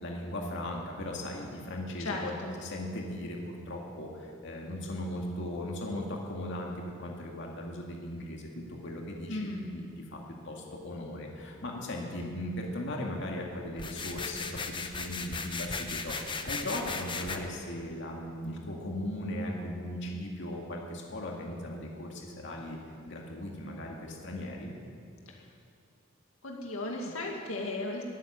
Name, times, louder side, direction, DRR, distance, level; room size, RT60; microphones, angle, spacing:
voice 1, 0.0-9.9 10.1-10.2 10.4-24.7, left 1 dB, 60° left, 0 dB, 2.1 m, -38 dB
voice 2, 2.0-2.5 9.3-9.7 25.3-25.4 26.4-28.0, left 2 dB, 80° left, 0 dB, 2.0 m, -36 dB
sound 1, 13.8-17.4, left 4 dB, 25° left, 0.9 m, -36 dB
14.5 x 9.5 x 10.0 m, 2.4 s
head